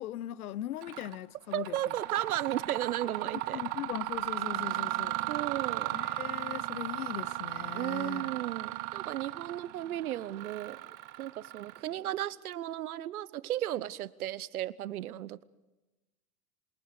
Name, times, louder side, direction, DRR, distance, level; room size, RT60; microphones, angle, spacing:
voice 1, 0.0-1.8 3.5-5.2 5.9-8.4, left 13 dB, 85° left, 0.8 m, -39 dB
Mechanisms, 0.8-1.1 1.5-12.1, right 17 dB, 55° right, 1.5 m, -36 dB
voice 2, 1.5-3.6 4.6-4.8 5.3-6.0 7.7-10.8 11.2-15.4, right 13 dB, 85° right, 0.9 m, -35 dB
27.5 x 26.0 x 4.8 m
hypercardioid pair, 95°, 43 cm